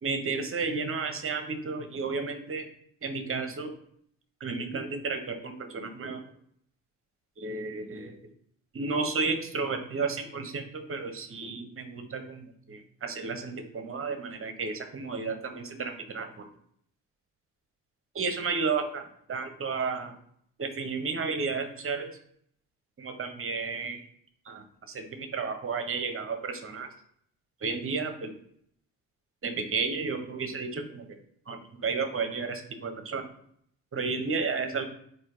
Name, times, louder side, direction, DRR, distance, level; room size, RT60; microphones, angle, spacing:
voice 1, 0.0-2.7 3.0-3.7 4.4-6.2 7.4-8.1 8.7-16.4 18.1-20.1 20.6-22.1 23.0-24.0 24.5-26.9 27.6-28.3 29.4-31.1 31.5-33.3 33.9-34.9, right 4 dB, 35° right, 7 dB, 0.9 m, -32 dB
4.3 x 2.7 x 3.7 m, 0.68 s
hypercardioid pair, 45°, 38 cm